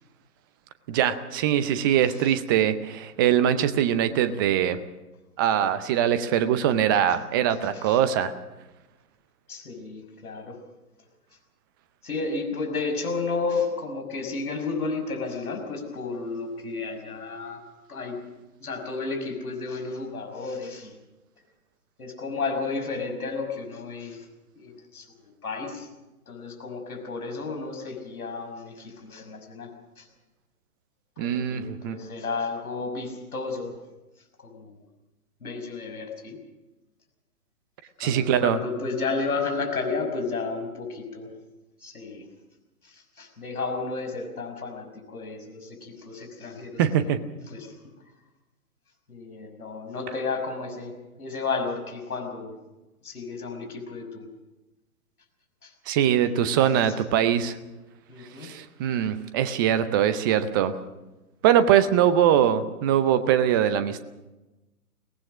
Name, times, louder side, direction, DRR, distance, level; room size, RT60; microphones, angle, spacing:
voice 1, 0.9-4.8 5.4-8.3 31.2-32.0 38.0-38.6 46.8-47.2 55.9-57.6 58.4-60.7 61.4-64.0, right 10 dB, 15° right, 12 dB, 0.6 m, -22 dB
voice 2, 9.5-10.6 12.0-17.6 17.9-18.2 18.6-21.0 22.0-24.3 24.6-25.1 25.4-25.9 26.3-29.7 30.0-30.1 31.2-33.7 34.4-34.8 35.4-36.4 38.0-41.3 41.8-42.3 42.8-47.1 47.5-47.7 49.1-50.9 51.2-52.5 53.0-54.3 55.6-55.7 56.2-57.0 58.1-58.5, left 4 dB, 70° left, 4 dB, 5.9 m, -32 dB
23.0 x 18.5 x 6.3 m, 1.1 s
figure-of-eight pair, 125°, 46 cm